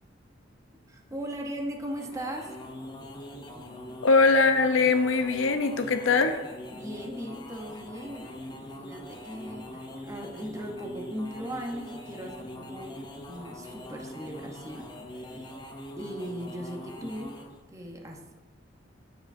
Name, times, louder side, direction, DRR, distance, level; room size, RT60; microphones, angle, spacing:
voice 1, 0.7-2.6 6.7-15.6 16.0-17.4 17.7-18.4, equal, 15° right, 1 dB, 0.7 m, -38 dB
sound 1, 1.8-17.6, left 1 dB, 25° left, 0.6 m, -43 dB
voice 2, 4.0-6.4, left 4 dB, 80° left, 7 dB, 0.6 m, -22 dB
8.7 x 4.9 x 2.5 m, 1.2 s
head